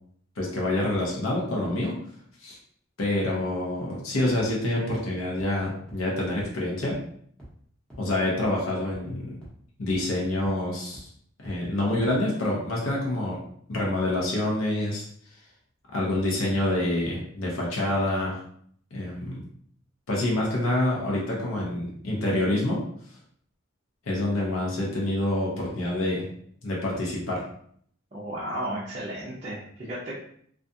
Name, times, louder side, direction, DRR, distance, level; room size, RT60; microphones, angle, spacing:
voice 1, 0.4-2.0 2.4-2.6 3.0-7.0 8.0-9.4 9.8-11.1 11.4-13.4 13.7-15.0 15.9-18.4 18.9-19.4 20.1-22.8 24.1-26.2 26.6-27.4, left 1 dB, 85° left, -3 dB, 0.7 m, -27 dB
sound 1, 4.4-4.5 4.9-5.0 5.4-5.5 5.9-6.0 6.4-6.5 6.9-7.0 7.4-7.5 7.9-8.0 8.4-8.5 8.9-9.0 9.4-9.5 9.9-10.0 10.4-10.5 10.9-11.0 11.4-11.5 11.9-12.0, right 1 dB, 5° left, 0.8 m, -44 dB
voice 2, 28.1-30.2, right 1 dB, 35° right, -8 dB, 0.5 m, -34 dB
2.4 x 2.2 x 2.6 m, 0.63 s
head